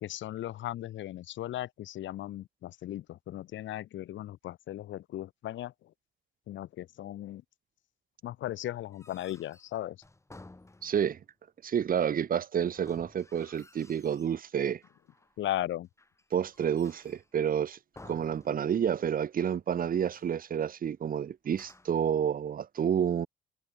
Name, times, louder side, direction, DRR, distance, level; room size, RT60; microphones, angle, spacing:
voice 1, 0.0-5.7 6.5-7.4 8.2-10.0 15.4-15.9, left 13 dB, 70° left, 0.9 m, -37 dB
sound 1, 8.8-11.3 12.7-14.4 14.8-15.4 16.0-17.4 17.9-19.0 19.3-19.4 19.9-20.4 21.4-22.1, left 2 dB, 15° left, 2.9 m, -55 dB
voice 2, 10.8-11.2 11.6-14.8 16.3-17.8 18.0-23.3, right 8 dB, 45° right, 0.9 m, -29 dB
cardioid pair, 90°, 20 cm